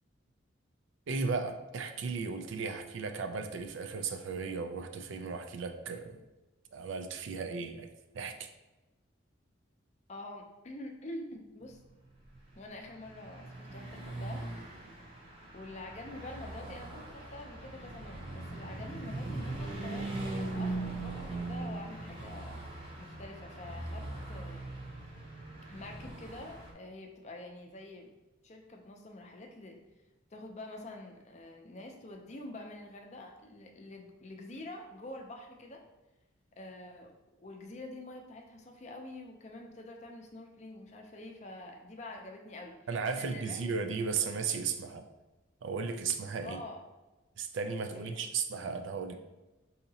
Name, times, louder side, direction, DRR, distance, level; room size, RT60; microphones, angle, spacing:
voice 1, 1.1-6.2 6.7-7.9 8.1-8.5 42.9-45.1 45.6-46.6 47.4-49.2, right 5 dB, 75° right, 6 dB, 0.4 m, -35 dB
voice 2, 10.1-11.8 12.6-14.4 15.5-20.1 20.5-22.6 23.0-24.7 25.7-28.1 28.4-29.8 30.3-35.8 36.6-37.1 37.4-42.8 43.1-43.6 46.4-46.8 48.0-48.1 49.1-49.2, left 1 dB, 35° left, 2 dB, 0.5 m, -46 dB
Car passing by / Truck, 12.3-26.7, right 2 dB, 30° right, 0.6 m, -40 dB
4.8 x 2.8 x 2.7 m, 1.1 s
head